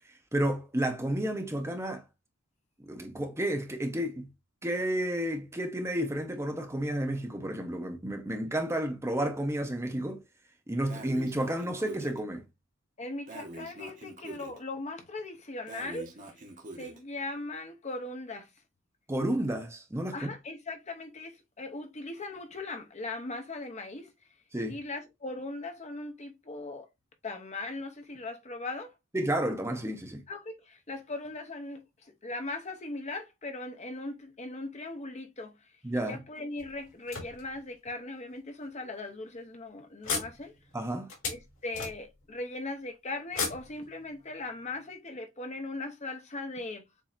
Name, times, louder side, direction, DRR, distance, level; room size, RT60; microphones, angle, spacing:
voice 1, 0.3-2.0 2.9-4.3 4.6-10.2 10.7-12.4 19.1-20.3 24.5-24.8 29.1-30.2 35.8-36.2 40.7-41.1, right 1 dB, 15° right, 0.8 m, -31 dB
Breathing, 10.9-12.2 13.3-14.6 15.7-17.0, right 2 dB, 40° right, 1.0 m, -44 dB
voice 2, 13.0-16.4 16.7-18.5 20.1-24.1 24.7-26.9 27.2-28.9 30.3-40.5 41.3-46.8, left 2 dB, 35° left, 0.8 m, -39 dB
sound 1, 36.6-37.9 38.6-38.7 39.1-39.3 40.0-42.4 43.3-44.4, left 4 dB, 65° left, 2.6 m, -37 dB
7.1 x 2.7 x 2.5 m
head